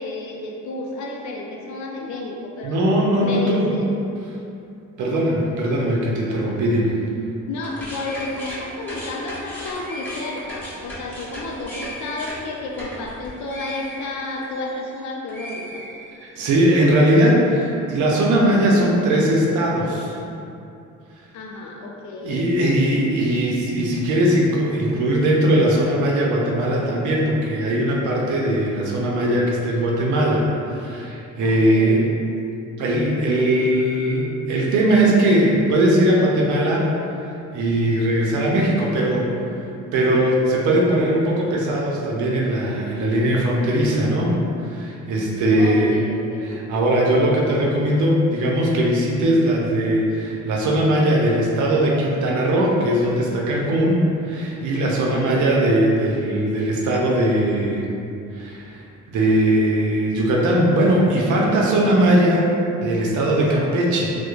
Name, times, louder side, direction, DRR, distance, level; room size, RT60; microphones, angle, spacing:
voice 1, 0.0-2.8 3.2-3.9 6.6-6.9 7.5-15.8 21.3-22.5 31.4-32.2 45.6-46.6 55.0-55.5, left 2 dB, 70° left, -1 dB, 0.5 m, -32 dB
voice 2, 2.6-3.7 5.0-6.9 16.2-20.1 22.2-30.5 30.7-32.1 32.8-36.9 37.5-39.3 39.9-44.4 44.7-46.0 46.4-57.9 58.3-58.7 59.1-62.5 62.8-64.1, right 1 dB, 80° right, -2 dB, 0.6 m, -19 dB
sound 1, 7.6-15.0 15.3-16.5, equal, 5° left, 1.1 m, -36 dB
2.9 x 2.1 x 2.4 m, 2.6 s
cardioid pair, 90°, 30 cm